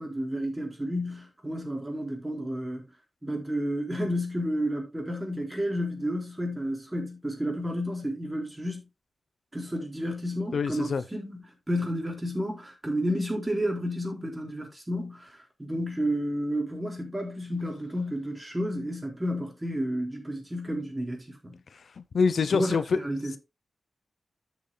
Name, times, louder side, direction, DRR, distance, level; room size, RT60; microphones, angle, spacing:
voice 1, 0.0-2.8 3.2-8.8 9.5-11.4 11.7-21.6 22.4-23.4, equal, 15° right, 4.2 m, -31 dB
voice 2, 10.5-11.0 22.0-23.0, left 5 dB, 70° left, 0.6 m, -25 dB
13.5 x 7.2 x 2.2 m
wide cardioid pair, 105°, 0 cm